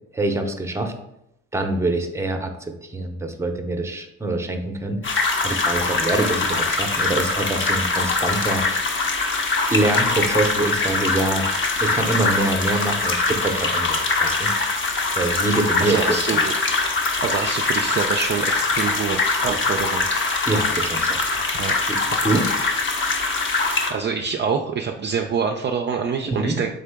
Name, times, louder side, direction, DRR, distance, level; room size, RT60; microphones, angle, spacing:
voice 1, 0.1-0.9 1.5-9.0 9.7-11.4 11.8-14.5 15.2-16.4 20.5-21.2 21.9-22.5 26.3-26.6, right 2 dB, 10° right, 5 dB, 0.7 m, -25 dB
sound 1, 5.0-23.9, left 3 dB, 40° left, 0.9 m, -23 dB
voice 2, 15.8-16.5 17.2-20.1 21.5-21.7 22.2-22.4 23.9-26.7, right 6 dB, 35° right, 3 dB, 0.4 m, -26 dB
3.8 x 3.6 x 3.5 m, 0.81 s
supercardioid pair, 70°, 30 cm